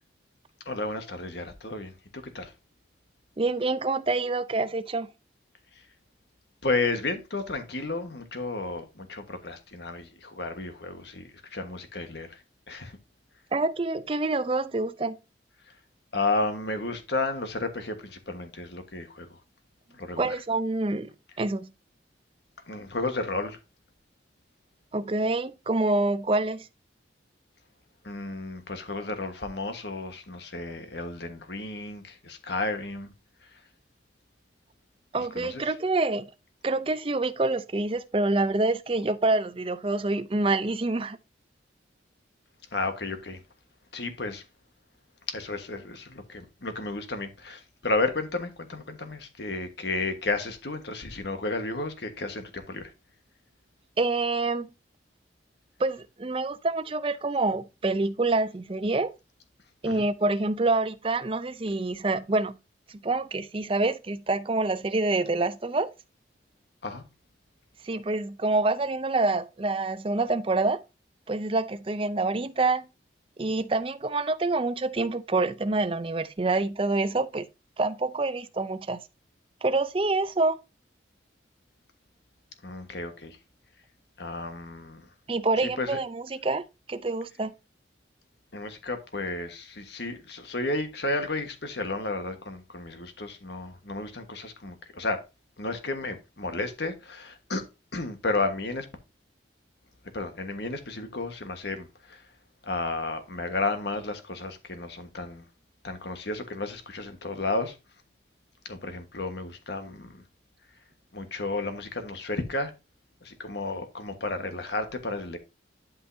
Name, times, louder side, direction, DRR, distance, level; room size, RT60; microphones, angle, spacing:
voice 1, 0.6-2.0 2.2-2.5 5.7-5.9 6.6-13.0 15.6-15.7 16.1-19.4 19.9-20.3 22.7-23.6 28.0-33.1 33.4-33.6 35.2-35.7 42.7-43.4 43.9-44.4 45.3-52.9 59.8-60.1 66.8-67.0 82.6-83.4 84.2-85.1 85.6-86.0 88.5-95.2 95.6-97.6 97.9-98.9 100.1-102.3 102.6-105.4 105.8-107.8 108.6-110.2 111.1-112.7 113.2-115.4, left 2 dB, 60° left, 1.4 m, -32 dB
voice 2, 3.4-5.1 13.5-15.2 20.2-21.1 21.4-21.7 24.9-26.7 35.1-36.3 36.6-41.2 54.0-54.7 55.8-59.1 59.8-62.6 62.9-65.9 67.8-70.8 71.3-72.9 73.4-77.5 77.8-79.0 79.6-80.6 85.3-86.6 86.9-87.5, right 2 dB, 30° right, 0.5 m, -26 dB
11.5 x 5.4 x 2.7 m
head